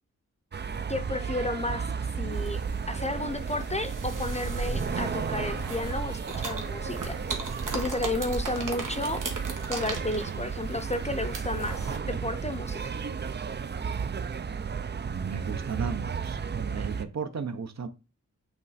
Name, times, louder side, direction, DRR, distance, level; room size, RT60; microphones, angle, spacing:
sound 1, 0.5-17.0, right 6 dB, 35° right, 0.4 m, -34 dB
voice 1, 0.9-2.6 2.9-7.2 7.7-9.2 9.7-13.0, left 2 dB, 20° left, 0.6 m, -32 dB
sound 2, 2.3-12.0, right 3 dB, 85° right, 1.2 m, -37 dB
voice 2, 15.0-17.9, right 6 dB, 60° right, 0.7 m, -35 dB
8.1 x 3.2 x 4.1 m
wide cardioid pair, 105°, 31 cm